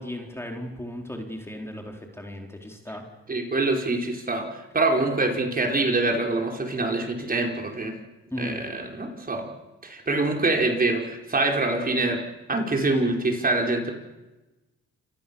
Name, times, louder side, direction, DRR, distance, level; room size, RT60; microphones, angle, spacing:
voice 1, 0.0-3.0 8.3-8.6, left 1 dB, 10° left, 2 dB, 4.1 m, -36 dB
voice 2, 3.3-7.9 8.4-9.5 9.8-12.2 12.5-13.9, right 2 dB, 30° right, 2 dB, 5.3 m, -25 dB
28.0 x 26.5 x 7.2 m, 1.1 s
cardioid pair, 90°, 30 cm